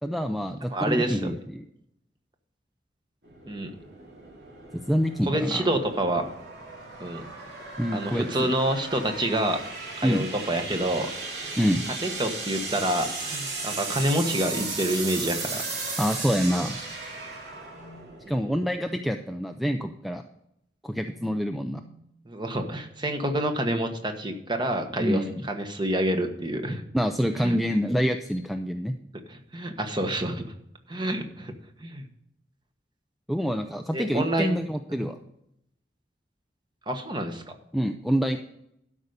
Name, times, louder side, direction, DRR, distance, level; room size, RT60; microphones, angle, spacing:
voice 1, 0.0-1.6 4.7-5.7 7.8-8.5 10.0-10.3 11.6-11.8 16.0-16.8 18.3-20.2 20.8-21.8 25.0-25.5 26.9-28.9 33.3-35.2 37.7-38.4, equal, ahead, 6 dB, 0.4 m, -26 dB
voice 2, 0.7-1.3 3.5-3.7 5.2-6.2 7.0-7.2 7.9-9.6 10.0-11.6 12.0-15.6 18.2-18.5 22.3-26.8 27.4-27.6 29.3-30.4 30.9-31.5 31.8-32.0 33.9-34.6 34.9-35.1 36.9-37.4, right 1 dB, 25° right, 6 dB, 1.2 m, -28 dB
sound 1, 3.2-18.6, right 3 dB, 65° right, 3.1 m, -36 dB
sound 2, 17.7-18.2 19.6-19.9 21.1-22.1 23.6-25.4 26.5-27.0 28.2-28.5, left 1 dB, 45° left, 1.0 m, -53 dB
12.5 x 5.4 x 6.5 m, 0.78 s
head